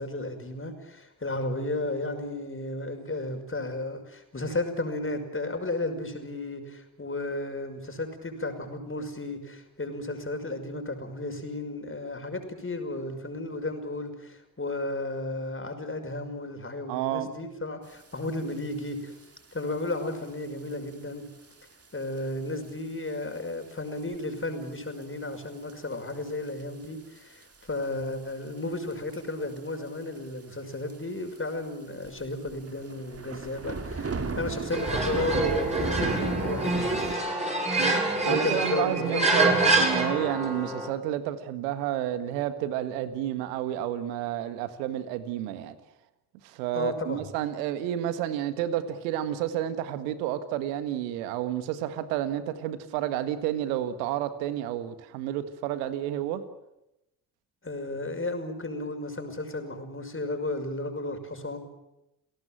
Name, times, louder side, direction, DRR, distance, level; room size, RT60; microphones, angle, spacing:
voice 1, 0.0-19.2 19.5-21.2 21.9-37.1 37.5-37.7 38.2-39.5 46.7-47.2 57.6-61.6, left 2 dB, 25° left, 5.8 m, -33 dB
voice 2, 16.9-17.3 37.8-38.0 38.3-45.7 46.4-56.4, right 11 dB, 75° right, 1.8 m, -30 dB
sound 1, 18.5-18.6 18.9-19.2 19.9-20.1 20.7-20.8 21.4-21.5 21.9-22.0 22.2-22.3 23.4-23.6 24.0-24.1 25.0-25.1 25.7-26.1 26.5-26.6 27.2-27.8 28.9-29.2 29.5-29.6 29.9-30.0 30.2-30.3 30.9-31.0 31.4-31.5 32.0-37.2, right 4 dB, 30° right, 2.5 m, -34 dB
sound 2, 34.7-40.9, right 2 dB, 15° right, 7.8 m, -26 dB
29.5 x 17.5 x 7.6 m
figure-of-eight pair, 40°, 48 cm